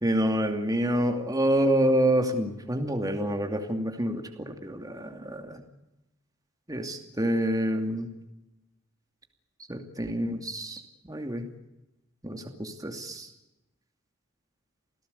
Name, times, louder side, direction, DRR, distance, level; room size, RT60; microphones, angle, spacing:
voice 1, 0.0-5.6 6.7-8.1 9.7-10.8 11.1-11.4 12.2-13.3, right 1 dB, 20° right, 4 dB, 2.6 m, -27 dB
28.5 x 17.5 x 8.3 m, 0.94 s
head